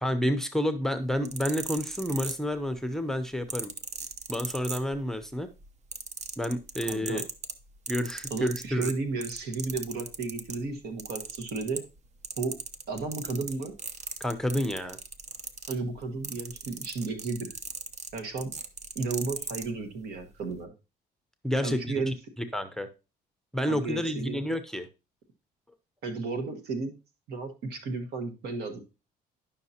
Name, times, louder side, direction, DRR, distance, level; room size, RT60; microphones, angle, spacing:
voice 1, 0.0-3.7 4.3-5.5 6.4-7.2 7.9-8.9 14.2-15.0 21.4-22.1 22.5-22.9 23.5-24.9, equal, 5° left, 8 dB, 0.7 m, -29 dB
sound 1, 1.1-2.8 3.5-5.2 5.6-10.6 11.0-12.0 12.2-19.7 20.4-20.6, right 5 dB, 40° right, 0.8 m, -38 dB
voice 2, 6.8-7.2 8.3-11.8 12.4-12.5 12.9-13.7 15.7-17.6 18.1-18.5 18.9-20.7 21.6-22.1 23.6-24.4 26.0-26.9 27.3-28.8, right 3 dB, 70° right, 5 dB, 1.5 m, -33 dB
10.5 x 5.7 x 2.8 m, 0.30 s
cardioid pair, 110°, 17 cm